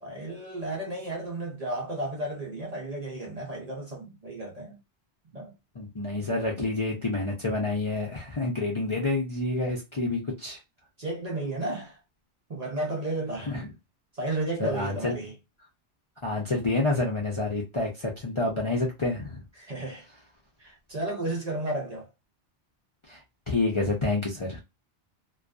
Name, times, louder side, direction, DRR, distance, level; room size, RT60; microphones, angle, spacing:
voice 1, 0.0-4.8 5.3-5.5 11.0-12.0 12.5-13.5 14.1-15.3 19.6-20.1 20.6-22.1, right 2 dB, 45° right, 0.7 m, -33 dB
voice 2, 5.8-10.6 13.5-13.7 14.6-15.1 16.2-19.4 23.1-23.2 23.5-24.6, left 2 dB, 35° left, 0.5 m, -28 dB
2.5 x 2.3 x 2.2 m
omnidirectional pair, 1.2 m